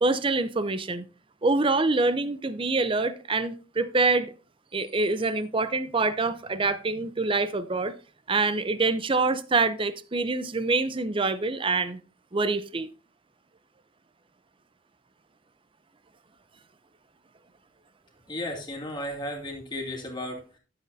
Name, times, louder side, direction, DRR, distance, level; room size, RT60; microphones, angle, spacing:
voice 1, 0.0-1.0 1.4-4.3 4.7-8.0 8.3-12.0 12.3-12.9, right 3 dB, 25° right, 0.6 m, -25 dB
voice 2, 18.3-20.6, left 1 dB, 25° left, 2.6 m, -34 dB
12.5 x 7.7 x 2.7 m
head